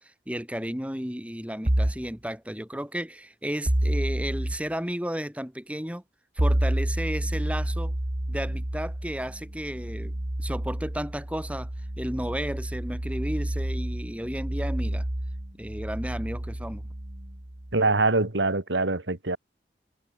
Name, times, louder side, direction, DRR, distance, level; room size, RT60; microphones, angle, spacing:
voice 1, 0.0-6.0 6.4-7.9 8.3-11.7 12.0-15.0 15.6-16.9, equal, 5° right, 5.9 m, -33 dB
sound 1, 1.7-2.1 3.6-4.6 6.4-17.7, right 1 dB, 40° right, 1.6 m, -29 dB
voice 2, 17.7-19.4, right 3 dB, 85° right, 2.4 m, -24 dB
head